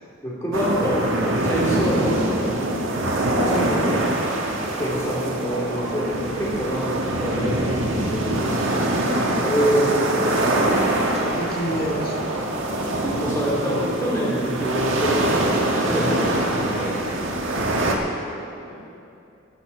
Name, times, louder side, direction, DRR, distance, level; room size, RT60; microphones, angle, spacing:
voice 1, 0.2-2.6 4.8-8.6 9.4-10.6 13.0-16.2, right 1 dB, 15° left, -6 dB, 3.4 m, -25 dB
sound 1, 0.5-17.9, right 1 dB, 75° right, 1.7 m, -24 dB
voice 2, 3.4-4.1 11.1-12.3 16.7-17.0, equal, 45° left, -2 dB, 2.3 m, -28 dB
12.0 x 11.5 x 6.3 m, 2.7 s
head